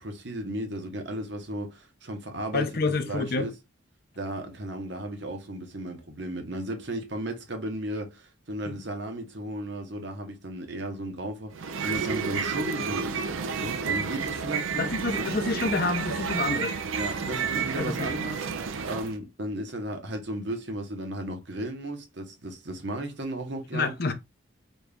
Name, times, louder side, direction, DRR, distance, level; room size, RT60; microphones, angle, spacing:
voice 1, 0.0-3.5 4.2-15.3 16.9-23.9, right 1 dB, 55° right, 0.9 m, -35 dB
voice 2, 2.5-3.5 8.7-8.8 14.8-16.8 17.8-18.1 23.7-24.1, left 3 dB, 50° left, 0.6 m, -28 dB
sound 1, 11.5-19.2, right 6 dB, 75° right, 0.5 m, -31 dB
4.2 x 2.4 x 3.4 m
head